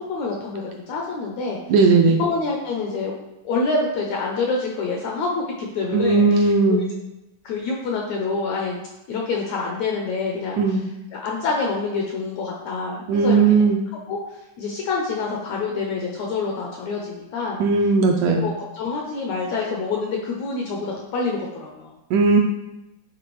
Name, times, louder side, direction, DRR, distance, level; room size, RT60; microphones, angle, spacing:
voice 1, 0.0-3.1 3.4-6.8 7.4-8.8 9.1-10.8 11.1-13.6 14.1-17.6 18.2-21.9, left 4 dB, 75° left, 0 dB, 1.7 m, -27 dB
voice 2, 1.7-2.2 5.9-6.9 10.6-10.8 13.1-13.8 17.6-18.5 22.1-22.4, right 4 dB, 80° right, 2 dB, 1.8 m, -17 dB
10.0 x 3.6 x 3.1 m, 0.97 s
omnidirectional pair, 3.9 m